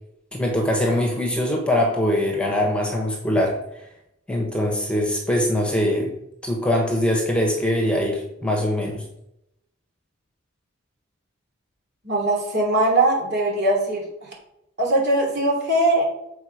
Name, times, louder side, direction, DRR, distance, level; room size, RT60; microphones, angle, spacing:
voice 1, 0.3-3.5 4.3-6.2 6.4-9.0, left 1 dB, 5° left, 0 dB, 1.3 m, -22 dB
voice 2, 12.0-14.0 14.8-16.1, right 1 dB, 60° right, -2 dB, 3.0 m, -20 dB
7.6 x 4.9 x 4.9 m, 0.82 s
head